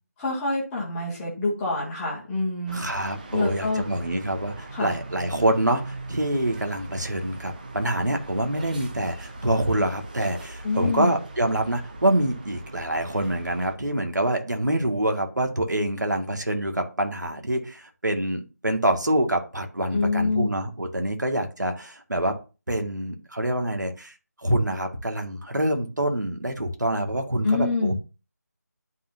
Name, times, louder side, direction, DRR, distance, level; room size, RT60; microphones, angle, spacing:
voice 1, 0.2-2.8 3.3-3.8 4.7-4.9 10.6-11.1 19.9-20.5 27.4-28.0, left 3 dB, ahead, -6 dB, 0.3 m, -26 dB
sound 1, 2.7-13.8, right 2 dB, 30° right, 0.9 m, -40 dB
voice 2, 2.7-22.4 22.7-28.0, right 1 dB, 80° right, 4 dB, 2.0 m, -26 dB
12.0 x 3.9 x 2.7 m, 0.31 s
figure-of-eight pair, 165°, 10 cm